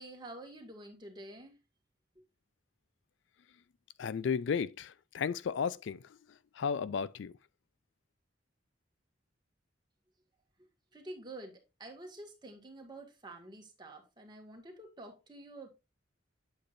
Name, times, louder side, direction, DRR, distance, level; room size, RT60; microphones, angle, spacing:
voice 1, 0.0-1.6 2.2-2.3 10.9-15.7, right 2 dB, 20° right, 1.8 m, -48 dB
voice 2, 4.0-6.0 6.6-7.3, left 6 dB, 70° left, 0.4 m, -33 dB
8.5 x 7.7 x 2.5 m
head